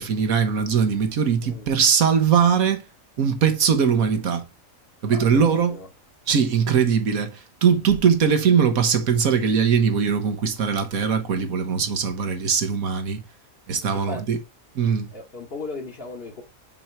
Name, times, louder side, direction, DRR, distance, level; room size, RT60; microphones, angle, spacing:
voice 1, 0.0-2.8 3.2-4.4 5.0-5.8 6.3-13.2 13.7-14.4 14.7-15.1, right 7 dB, 85° right, 1.7 m, -21 dB
voice 2, 1.4-1.7 5.0-5.9 14.1-14.2 15.1-16.4, left 3 dB, 45° left, 1.6 m, -36 dB
6.3 x 4.4 x 4.6 m
omnidirectional pair, 1.4 m